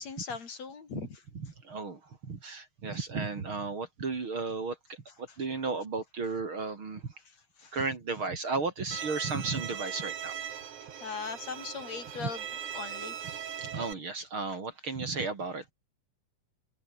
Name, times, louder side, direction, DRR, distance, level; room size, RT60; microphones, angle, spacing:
voice 1, 0.0-1.2 7.2-7.8 10.8-12.4 12.7-13.3, left 5 dB, 55° left, 4.5 m, -40 dB
voice 2, 1.4-4.8 5.2-7.0 7.7-10.3 12.2-12.3 13.3-15.7, right 4 dB, 40° right, 3.5 m, -34 dB
Bowed string instrument, 8.9-13.9, right 9 dB, 70° right, 3.6 m, -40 dB
omnidirectional pair, 3.7 m